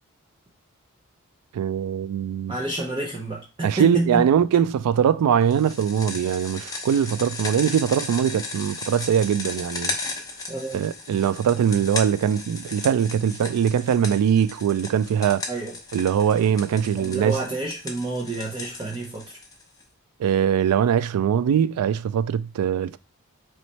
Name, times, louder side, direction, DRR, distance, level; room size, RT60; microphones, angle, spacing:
voice 1, 1.5-2.5 3.6-10.0 10.7-15.4 15.9-17.4 20.2-23.0, right 8 dB, 90° right, 0.3 m, -22 dB
voice 2, 2.5-4.3 10.5-10.8 15.5-15.8 17.0-19.3, right 2 dB, 20° right, 0.6 m, -29 dB
sound 1, 5.5-19.8, left 3 dB, 15° left, 0.8 m, -36 dB
3.1 x 3.1 x 4.1 m
head